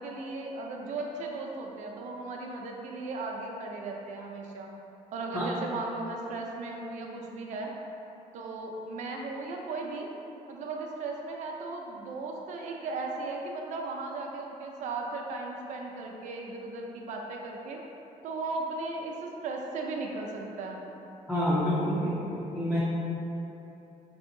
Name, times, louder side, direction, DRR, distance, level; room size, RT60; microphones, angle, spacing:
voice 1, 0.0-4.7 5.1-7.7 8.3-10.1 10.5-17.8 18.2-20.8, right 3 dB, 65° right, 0 dB, 0.5 m, -36 dB
voice 2, 21.3-22.8, equal, 5° left, -8 dB, 0.5 m, -28 dB
4.9 x 2.7 x 2.6 m, 3.0 s
cardioid pair, 135°, 13 cm